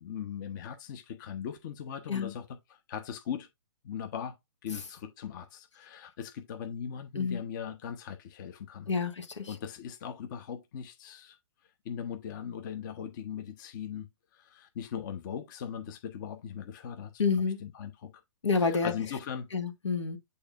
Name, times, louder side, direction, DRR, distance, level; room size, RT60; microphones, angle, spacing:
voice 1, 0.0-3.5 3.8-4.3 4.6-8.9 9.5-11.4 11.8-14.1 14.3-17.1 17.6-18.1 18.6-19.5, left 8 dB, 40° left, 1.1 m, -39 dB
voice 2, 8.9-9.6 17.2-17.6 18.4-18.9 19.5-20.2, left 5 dB, 70° left, 1.7 m, -29 dB
8.6 x 4.3 x 2.5 m
figure-of-eight pair, 125°, 15 cm